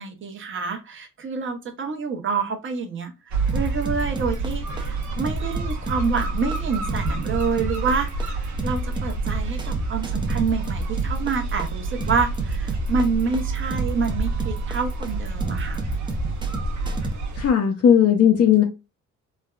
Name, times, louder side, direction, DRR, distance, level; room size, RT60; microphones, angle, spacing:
voice 1, 0.0-3.1 3.5-15.9, right 5 dB, 40° right, 5 dB, 0.9 m, -27 dB
sound 1, 3.3-17.5, right 3 dB, 70° right, 0.9 m, -28 dB
sound 2, 3.5-17.1, right 1 dB, 15° right, 0.5 m, -31 dB
voice 2, 17.4-18.6, left 8 dB, 55° left, 2 dB, 0.7 m, -16 dB
3.3 x 2.2 x 2.3 m, 0.27 s
cardioid pair, 90°, 30 cm